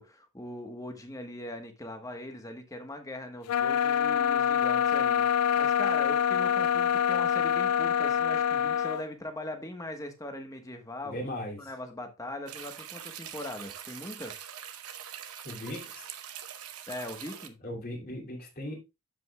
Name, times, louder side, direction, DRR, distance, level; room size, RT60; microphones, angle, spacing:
voice 1, 0.0-11.3 11.6-14.4 16.9-17.6, left 1 dB, 15° left, 1.1 m, -40 dB
sound 1, 3.5-9.0, left 8 dB, 80° left, 0.3 m, -25 dB
voice 2, 11.0-11.7 15.4-16.1 17.6-18.8, left 1 dB, 40° left, 2.6 m, -38 dB
sound 2, 12.5-17.5, right 10 dB, 75° right, 0.9 m, -43 dB
12.5 x 5.2 x 2.3 m
head